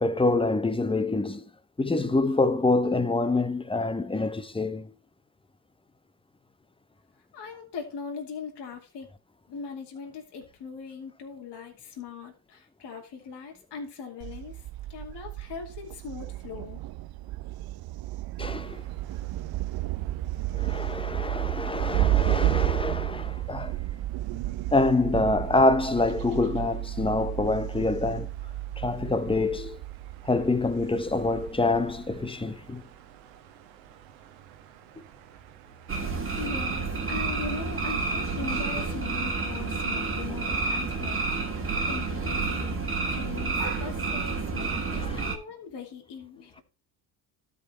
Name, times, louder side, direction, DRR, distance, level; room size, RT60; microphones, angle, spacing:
voice 1, 0.0-1.4 1.8-4.9 18.4-18.8 20.5-23.7 24.7-28.3 28.8-29.8 30.2-32.8 45.0-45.2, left 2 dB, 10° left, 0.9 m, -26 dB
voice 2, 7.3-9.1 9.5-14.6 14.9-16.8 36.4-41.2 41.9-46.6, left 6 dB, 55° left, 2.5 m, -40 dB
Thunder, 14.2-32.3, right 16 dB, 50° right, 0.5 m, -32 dB
sound 1, 18.6-38.5, right 13 dB, 85° right, 1.2 m, -40 dB
sound 2, 35.9-45.4, right 4 dB, 25° right, 1.8 m, -29 dB
12.5 x 4.8 x 4.2 m
supercardioid pair, 80°, 49 cm